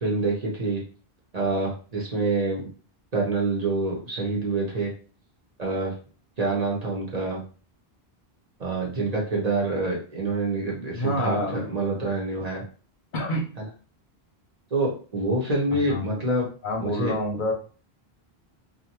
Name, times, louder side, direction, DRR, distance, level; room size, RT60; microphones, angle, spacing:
voice 1, 0.0-0.8 1.3-2.7 3.1-4.9 5.6-5.9 6.4-7.4 8.6-12.6 13.6-13.7 14.7-16.5 16.8-17.1, right 2 dB, 45° right, -2 dB, 0.8 m, -26 dB
voice 2, 10.9-11.7 13.1-13.5 15.7-16.2 16.6-17.5, left 1 dB, 55° left, 0 dB, 0.7 m, -28 dB
2.5 x 2.3 x 2.9 m, 0.38 s
omnidirectional pair, 1.0 m